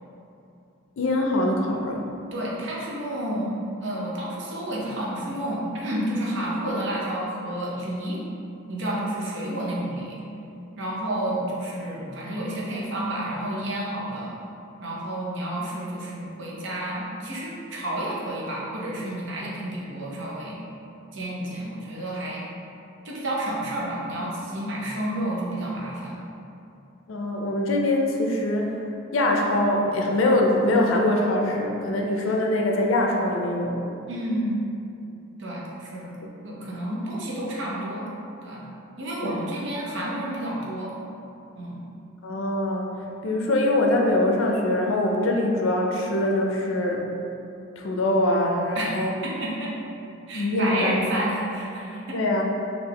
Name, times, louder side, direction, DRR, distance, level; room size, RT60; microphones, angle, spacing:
voice 1, 1.0-2.1 27.1-28.8 29.1-33.8 39.2-39.3 42.2-42.9 43.2-47.0 47.8-49.1 50.3-51.0 52.1-52.4, left 1 dB, 80° left, 0 dB, 0.5 m, -23 dB
voice 2, 2.3-8.2 8.7-10.2 10.8-14.3 14.8-20.6 21.1-22.4 23.0-26.2 34.1-34.7 35.4-36.1 36.4-38.1 38.4-38.6 39.0-41.0 41.5-41.8 48.7-48.9 49.2-49.7 50.3-52.2, right 1 dB, 65° right, -5 dB, 0.7 m, -30 dB
3.4 x 2.5 x 3.3 m, 2.7 s
head